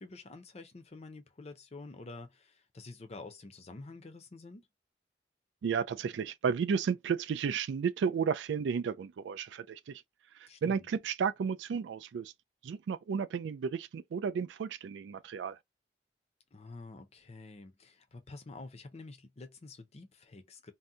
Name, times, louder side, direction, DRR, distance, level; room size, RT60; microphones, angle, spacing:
voice 1, 0.0-4.7 10.5-10.9 16.5-20.7, left 3 dB, 35° left, 0.6 m, -48 dB
voice 2, 5.6-10.0 10.6-12.3 12.6-15.6, right 6 dB, 80° right, 0.3 m, -33 dB
2.7 x 2.1 x 3.6 m
head